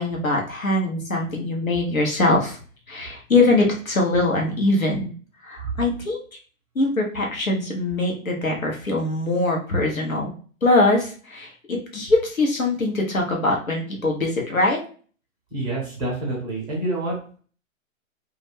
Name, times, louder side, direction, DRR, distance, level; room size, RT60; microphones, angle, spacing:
voice 1, 0.0-2.6 2.9-5.1 5.4-6.2 6.7-10.3 10.6-14.8, left 2 dB, 85° left, 0 dB, 1.0 m, -22 dB
voice 2, 15.5-17.4, right 1 dB, 10° right, -4 dB, 0.6 m, -28 dB
2.4 x 2.2 x 3.3 m, 0.42 s
figure-of-eight pair, 120°, 40 cm